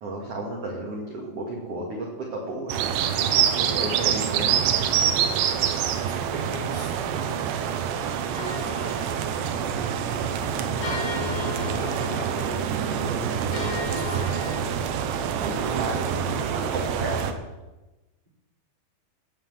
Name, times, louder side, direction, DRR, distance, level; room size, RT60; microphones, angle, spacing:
voice 1, 0.0-2.8 3.5-4.6 15.4-16.2 16.5-17.4, right 1 dB, 45° right, -1 dB, 2.1 m, -33 dB
sound 1, 2.7-17.3, right 8 dB, 80° right, 3.0 m, -26 dB
voice 2, 4.7-5.1 6.1-14.8 15.7-16.9, right 1 dB, 10° right, -3 dB, 3.7 m, -39 dB
sound 2, 8.4-14.6, left 4 dB, 70° left, 5.1 m, -36 dB
17.0 x 7.7 x 7.8 m, 1.1 s
omnidirectional pair, 5.2 m